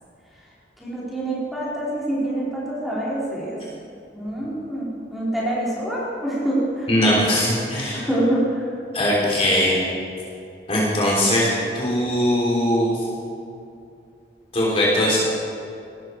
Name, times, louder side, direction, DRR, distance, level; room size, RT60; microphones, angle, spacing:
voice 1, 0.8-3.6 4.1-6.9 7.9-8.7, right 1 dB, ahead, -8 dB, 3.9 m, -26 dB
voice 2, 6.9-8.0 8.9-9.7 10.7-11.5 11.7-12.9 14.5-15.2, left 1 dB, 35° left, -5 dB, 3.5 m, -20 dB
18.0 x 13.5 x 4.6 m, 2.6 s
head